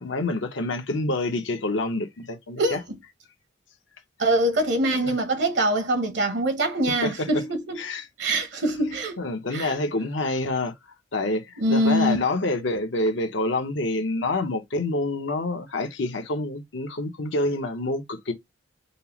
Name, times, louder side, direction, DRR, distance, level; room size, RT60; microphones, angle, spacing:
voice 1, 0.0-2.8 5.0-5.1 7.0-7.3 7.8-8.1 9.2-10.7 11.1-18.3, left 2 dB, 70° left, 0.8 m, -27 dB
voice 2, 4.2-7.8 8.2-9.2 9.5-9.8 11.6-12.2, right 1 dB, 65° right, 0.8 m, -23 dB
5.2 x 2.0 x 2.9 m
head